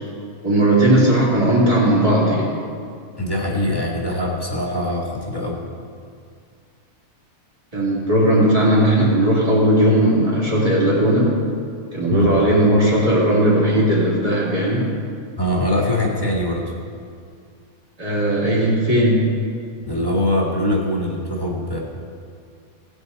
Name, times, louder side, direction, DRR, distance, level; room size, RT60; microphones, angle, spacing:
voice 1, 0.4-2.5 7.7-11.3 11.9-14.8 18.0-19.2, right 1 dB, 25° right, -7 dB, 2.9 m, -17 dB
voice 2, 3.2-5.6 12.1-12.4 15.4-16.7 19.8-21.8, left 1 dB, 15° left, -3 dB, 1.7 m, -22 dB
18.0 x 8.1 x 4.1 m, 2.3 s
omnidirectional pair, 1.4 m